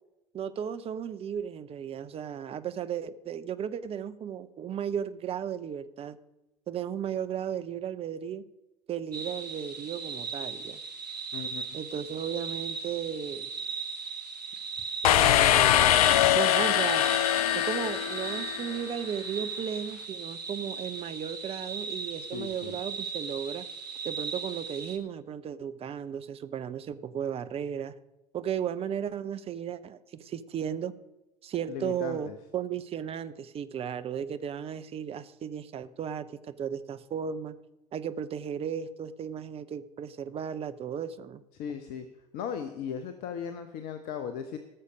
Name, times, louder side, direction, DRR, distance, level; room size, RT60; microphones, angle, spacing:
voice 1, 0.3-6.2 6.7-8.4 8.9-10.8 11.7-13.5 15.0-16.0 16.4-17.1 17.5-23.7 24.0-27.9 28.3-30.9 31.4-37.6 37.9-41.4, right 8 dB, 30° right, 12 dB, 0.7 m, -35 dB
sound 1, 9.1-25.0, right 5 dB, 85° right, 1.0 m, -38 dB
voice 2, 11.3-11.6 22.3-22.8 31.7-32.3 41.5-42.1 42.3-44.6, left 8 dB, 50° left, 9 dB, 0.8 m, -37 dB
sound 2, 15.0-18.8, left 12 dB, 65° left, 0.4 m, -23 dB
18.0 x 6.7 x 5.2 m, 0.98 s
figure-of-eight pair, 70°, 20 cm